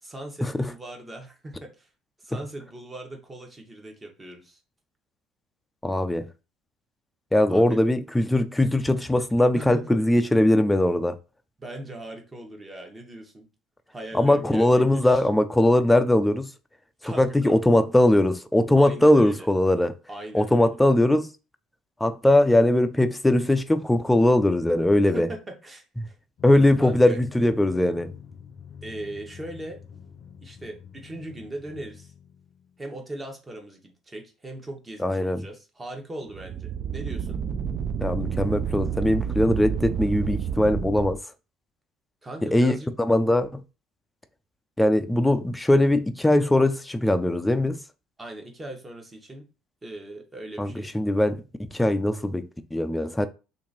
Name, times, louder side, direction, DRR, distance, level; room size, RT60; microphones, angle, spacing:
voice 1, 0.0-1.9 2.2-4.6 7.5-7.8 9.5-9.8 11.6-13.5 13.9-15.2 17.0-17.6 18.8-19.5 20.1-20.8 25.0-26.2 26.8-27.2 28.8-29.8 30.4-32.1 32.8-37.4 42.2-42.9 48.2-49.5 49.8-50.9, right 1 dB, 20° right, 1.1 m, -39 dB
voice 2, 5.8-6.3 7.3-11.2 14.1-16.5 17.0-19.9 20.3-21.3 22.0-25.3 26.4-28.1 35.0-35.4 38.0-41.2 42.5-43.6 44.8-47.8 50.6-51.4 51.7-53.3, left 1 dB, 10° left, 0.4 m, -21 dB
Drum, 26.4-32.9, left 7 dB, 55° left, 0.6 m, -46 dB
sound 1, 36.3-41.2, right 7 dB, 50° right, 0.4 m, -29 dB
2.9 x 2.6 x 4.0 m
supercardioid pair, 85°, 0 cm